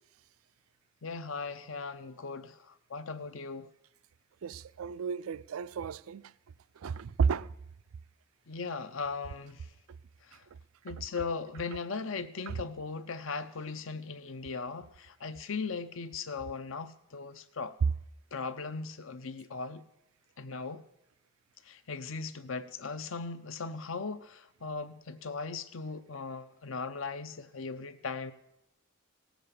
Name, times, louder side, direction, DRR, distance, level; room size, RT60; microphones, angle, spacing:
voice 1, 1.0-3.7 8.5-9.6 10.3-10.4 10.8-17.7 18.3-19.8 20.4-20.8 21.7-28.3, left 4 dB, 70° left, 0.7 m, -38 dB
voice 2, 4.4-6.2 6.8-7.5 12.5-12.6, right 6 dB, 80° right, 0.4 m, -32 dB
16.5 x 7.6 x 6.8 m
head